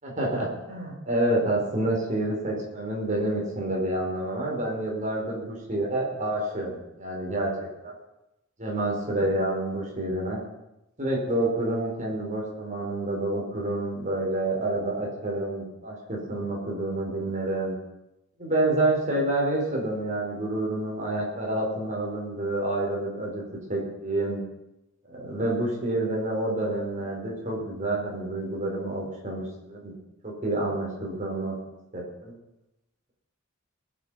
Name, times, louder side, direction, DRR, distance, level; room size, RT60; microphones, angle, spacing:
voice 1, 0.0-7.5 7.8-7.9 8.6-10.4 11.0-17.7 18.4-23.4 23.7-24.4 25.1-29.9 30.2-31.6 31.9-32.3, right 1 dB, 35° right, -2 dB, 5.0 m, -28 dB
20.0 x 8.5 x 5.9 m, 0.91 s
head